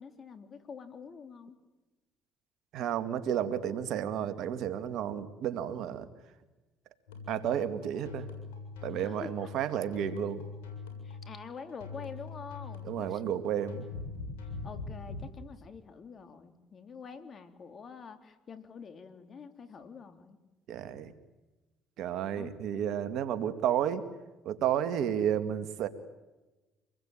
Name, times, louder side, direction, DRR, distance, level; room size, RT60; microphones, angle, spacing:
voice 1, 0.0-1.6 9.0-9.5 11.0-13.2 14.4-20.4 22.3-22.5, left 6 dB, 45° left, 8 dB, 3.5 m, -46 dB
voice 2, 2.7-6.1 7.3-8.3 8.8-10.4 12.9-13.8 20.7-21.1 22.0-24.0 24.5-25.9, right 9 dB, 70° right, 10 dB, 2.2 m, -32 dB
sound 1, 7.1-15.3, left 4 dB, 90° left, 7.4 m, -42 dB
27.0 x 21.0 x 9.2 m, 1.1 s
supercardioid pair, 70°, 0 cm